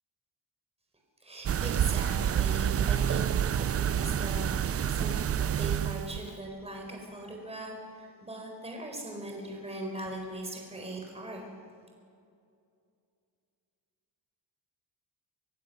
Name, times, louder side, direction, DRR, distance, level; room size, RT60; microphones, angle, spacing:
voice 1, 1.2-11.4, right 1 dB, 15° right, 1 dB, 4.4 m, -40 dB
sound 1, 1.5-6.3, right 9 dB, 35° right, 0.4 m, -28 dB
25.5 x 15.5 x 6.6 m, 2.4 s
cardioid pair, 120°, 41 cm